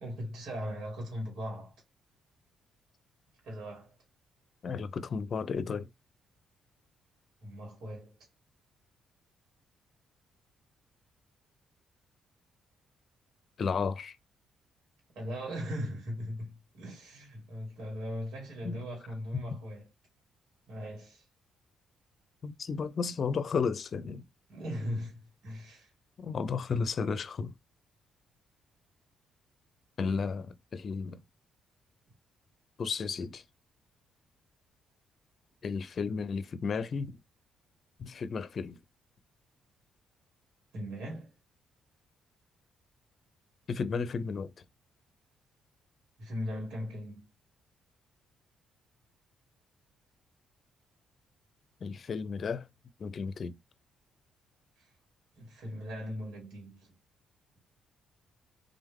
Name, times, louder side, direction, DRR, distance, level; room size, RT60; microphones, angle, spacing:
voice 1, 0.0-1.7 3.4-4.0 7.4-8.2 15.1-19.9 20.7-21.2 24.5-25.9 40.7-41.3 46.2-47.2 54.8-54.9 55.3-56.9, equal, 75° right, 2.7 m, -39 dB
voice 2, 4.6-5.9 13.6-14.2 18.6-18.8 19.3-19.4 22.4-24.3 26.2-27.5 30.0-31.2 32.8-33.4 35.6-37.2 38.0-38.8 43.7-44.5 51.8-52.7 53.0-53.6, left 5 dB, 50° left, 0.6 m, -33 dB
3.8 x 3.4 x 3.6 m
cardioid pair, 90°, 0 cm